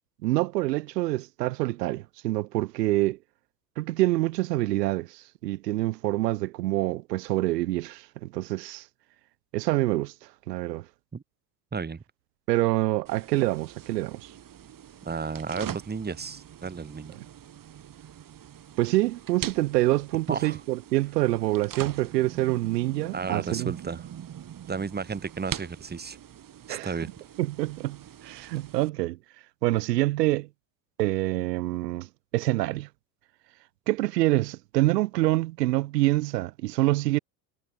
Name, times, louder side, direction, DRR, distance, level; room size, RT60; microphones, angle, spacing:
voice 1, 0.2-3.2 3.8-8.8 9.5-10.1 10.5-10.8 12.5-14.3 17.2-17.3 18.8-23.7 26.7-26.9 27.4-28.0 28.2-29.2 29.6-30.5 31.0-32.1 32.3-32.9 33.9-37.2, right 18 dB, 85° right, 2.4 m, -26 dB
voice 2, 11.7-12.0 15.0-17.1 20.3-20.6 23.1-24.0 24.7-26.2 26.7-27.1, right 5 dB, 20° right, 2.4 m, -33 dB
sound 1, 13.1-28.9, right 10 dB, 45° right, 6.1 m, -42 dB
hypercardioid pair, 80°, 48 cm